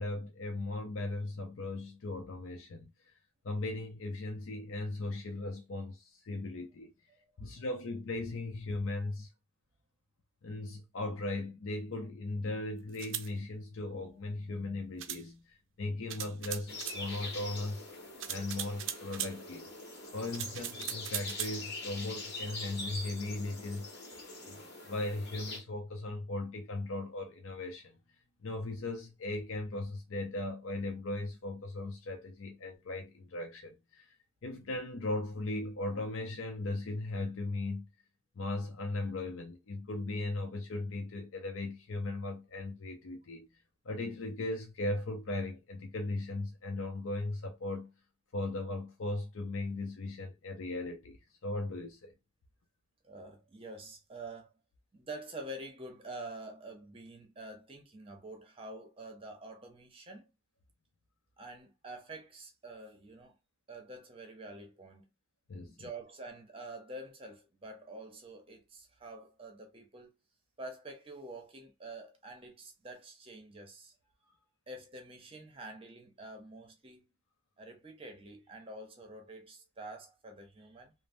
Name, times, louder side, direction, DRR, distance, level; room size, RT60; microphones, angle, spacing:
voice 1, 0.0-3.1 3.4-6.9 7.4-9.3 10.4-17.9 18.3-19.7 20.1-23.9 24.4-27.9 28.4-34.1 34.4-37.9 38.4-43.5 43.8-47.9 48.3-52.1 65.5-65.9, left 2 dB, 80° left, 0.6 m, -38 dB
voice 2, 7.1-7.5 53.0-54.5 54.9-60.3 61.4-63.4 63.7-65.1 65.7-70.1 70.6-73.9 74.7-77.1 77.6-80.9, right 2 dB, 25° right, 0.7 m, -47 dB
sound 1, 12.9-13.3 15.0-15.2 16.1-17.0 18.2-19.3 20.3-21.6, right 11 dB, 70° right, 0.4 m, -39 dB
sound 2, 16.7-25.6, left 2 dB, 55° left, 1.1 m, -44 dB
3.2 x 2.0 x 2.6 m
head